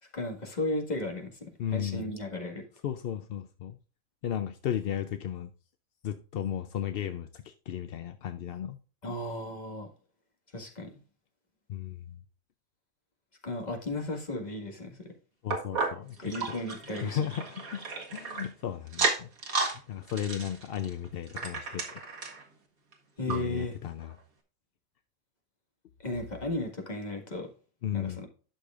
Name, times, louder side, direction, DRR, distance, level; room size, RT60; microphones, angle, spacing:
voice 1, 0.1-2.6 9.0-9.9 10.5-10.9 13.4-15.1 16.2-17.2 23.2-23.7 26.0-27.5 27.9-28.3, left 2 dB, 30° left, 1.9 m, -35 dB
voice 2, 1.6-2.2 2.8-3.8 4.2-5.5 6.0-8.8 11.7-12.2 15.4-16.6 17.0-17.8 18.1-19.3 19.7-22.0 23.3-24.2 27.8-28.2, left 9 dB, 60° left, 0.7 m, -35 dB
sound 1, 15.5-18.5 18.9-19.8 20.1-22.4 22.9-23.0 23.3-23.4 24.0-24.1, right 4 dB, 90° right, 2.1 m, -33 dB
12.0 x 6.5 x 2.5 m
omnidirectional pair, 1.4 m